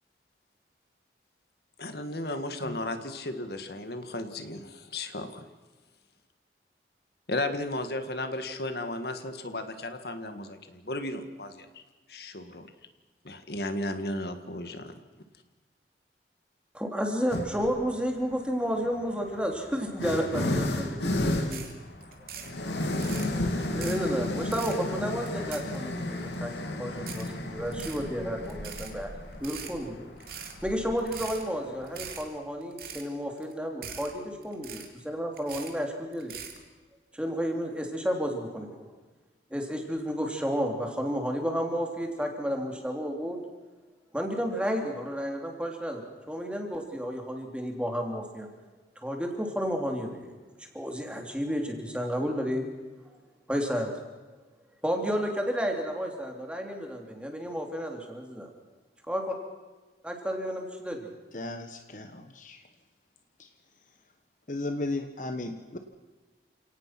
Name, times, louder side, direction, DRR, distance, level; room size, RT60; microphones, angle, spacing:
voice 1, 1.8-5.5 7.3-11.8 12.1-12.7 13.2-14.9, left 1 dB, 65° left, 8 dB, 1.9 m, -34 dB
voice 2, 16.7-21.7 23.1-23.3 23.7-26.5 26.8-29.1 29.4-36.4 37.1-38.9 39.5-43.4 44.1-48.5 49.0-50.4 50.7-52.6 53.5-53.9 54.8-58.5 59.1-59.3 60.0-61.1, equal, 5° right, 2 dB, 3.1 m, -32 dB
sound 1, 17.3-17.8 18.7-32.2, left 1 dB, 85° left, 2.7 m, -33 dB
sound 2, 21.5-21.7 22.0-22.5 22.9-23.3 23.6-24.1 24.4-24.8 25.2-26.0 26.3-26.4 27.0-27.3 27.7-28.0 28.4-28.9 29.3-29.7 30.2-30.5 31.0-31.4 31.8-32.2 32.6-33.1 33.4-33.5 33.8-34.1 34.4-35.0 35.4-35.8 36.1-36.6, right 8 dB, 55° right, 3.1 m, -41 dB
voice 3, 61.3-62.6 63.4-63.5 64.5-65.8, left 2 dB, 45° left, 6 dB, 1.3 m, -35 dB
29.0 x 18.0 x 6.0 m, 1.3 s
head